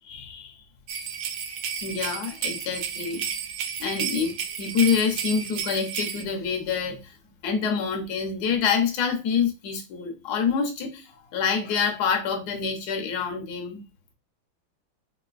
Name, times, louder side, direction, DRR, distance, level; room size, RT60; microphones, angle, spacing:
voice 1, 0.1-0.6 1.8-3.2 3.8-7.2 7.4-13.8, left 6 dB, 55° left, 1.3 m, -27 dB
sound 1, 0.9-6.2, right 7 dB, 85° right, 1.5 m, -32 dB
4.5 x 2.9 x 2.4 m
omnidirectional pair, 2.4 m